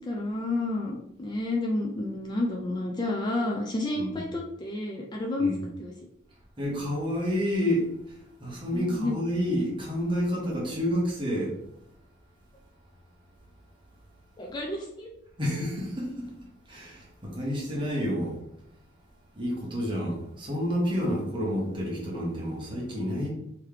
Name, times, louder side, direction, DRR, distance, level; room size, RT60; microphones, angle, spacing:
voice 1, 0.0-5.5 5.8-5.9 8.7-9.1 14.4-15.1, left 2 dB, 20° left, 0 dB, 0.4 m, -30 dB
voice 2, 6.6-11.5 15.4-16.3 16.7-18.4 19.3-23.3, equal, 25° right, -3 dB, 1.1 m, -29 dB
3.6 x 3.1 x 3.2 m, 0.79 s
head